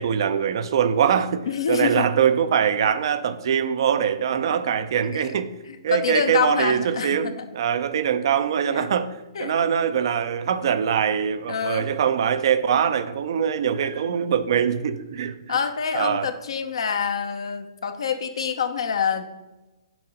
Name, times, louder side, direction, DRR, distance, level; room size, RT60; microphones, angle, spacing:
voice 1, 0.0-5.5 5.8-9.1 9.4-15.3 15.9-16.3, right 8 dB, 60° right, 12 dB, 0.5 m, -23 dB
voice 2, 1.5-2.1 4.0-4.1 4.5-4.6 5.0-5.3 5.7-7.5 8.7-8.9 9.3-9.5 11.5-11.9 15.5-19.3, left 6 dB, 70° left, 8 dB, 0.7 m, -26 dB
6.1 x 4.6 x 5.1 m, 1.1 s
hypercardioid pair, 130°, 3 cm